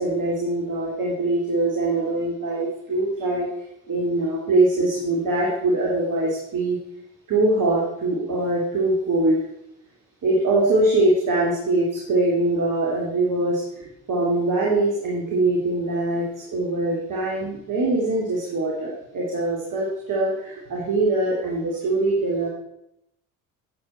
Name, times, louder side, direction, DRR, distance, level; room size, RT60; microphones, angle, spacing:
voice 1, 0.0-3.5 3.9-6.8 7.3-9.4 10.2-22.5, right 2 dB, 45° right, -4 dB, 3.2 m, -23 dB
11.5 x 8.2 x 4.5 m, 0.82 s
figure-of-eight pair, 55°, 44 cm